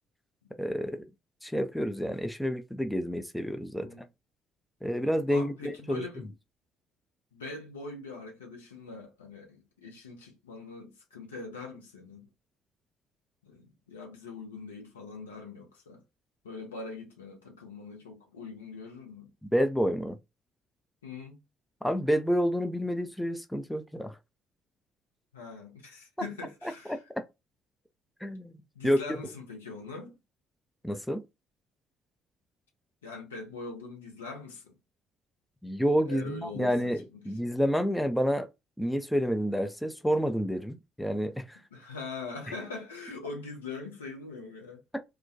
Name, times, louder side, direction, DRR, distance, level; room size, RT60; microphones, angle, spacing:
voice 1, 0.6-1.1 1.4-3.9 4.8-6.1 19.4-20.2 21.8-24.2 26.9-27.2 28.2-28.5 28.8-29.2 30.8-31.3 35.6-38.5 38.8-41.6 44.9-45.0, equal, 5° left, 0.3 m, -29 dB
voice 2, 5.3-6.3 7.3-12.3 13.4-16.0 16.4-19.3 21.0-21.4 25.3-27.0 28.7-30.2 33.0-34.7 36.0-37.4 41.7-44.8, left 3 dB, 75° left, 0.7 m, -42 dB
2.3 x 2.1 x 2.6 m
figure-of-eight pair, 45°, 0 cm